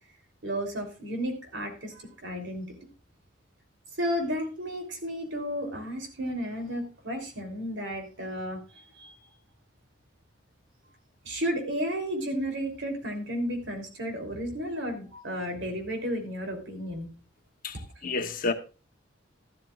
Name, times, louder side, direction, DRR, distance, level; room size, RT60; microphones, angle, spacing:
voice 1, 0.4-2.7 4.0-9.1 11.2-17.1, equal, 70° right, 3.2 m, -33 dB
voice 2, 17.6-18.5, left 3 dB, 45° left, 0.9 m, -30 dB
13.5 x 12.0 x 2.4 m
head